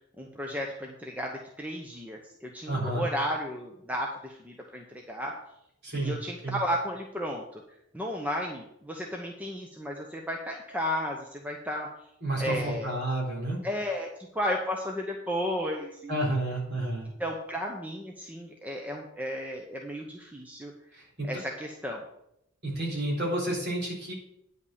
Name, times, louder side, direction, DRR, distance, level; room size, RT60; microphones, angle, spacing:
voice 1, 0.2-5.4 5.9-7.6 7.9-11.9 12.4-13.0 13.6-16.4 17.2-20.7 21.3-22.0, equal, 5° right, 0 dB, 0.8 m, -33 dB
voice 2, 2.7-3.0 5.8-6.2 6.4-6.6 12.2-13.6 16.1-17.1 20.9-21.3 22.6-24.1, right 1 dB, 50° right, -3 dB, 3.9 m, -30 dB
9.6 x 5.3 x 7.1 m, 0.78 s
head